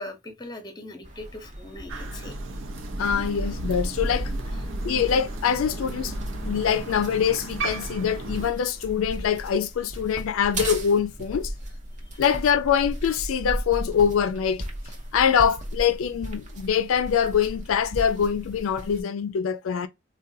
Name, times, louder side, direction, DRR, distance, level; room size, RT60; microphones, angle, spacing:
voice 1, 0.0-2.3 4.3-4.4 12.1-12.2, left 1 dB, 20° left, 0.7 m, -40 dB
sound 1, 1.0-19.0, right 1 dB, 35° right, 0.7 m, -37 dB
Crow, 1.9-8.5, right 1 dB, 75° right, 0.6 m, -33 dB
voice 2, 3.0-4.3 4.8-6.1 6.4-11.5 12.2-14.6 15.1-19.9, left 7 dB, 90° left, 0.4 m, -24 dB
3.8 x 2.2 x 2.6 m
head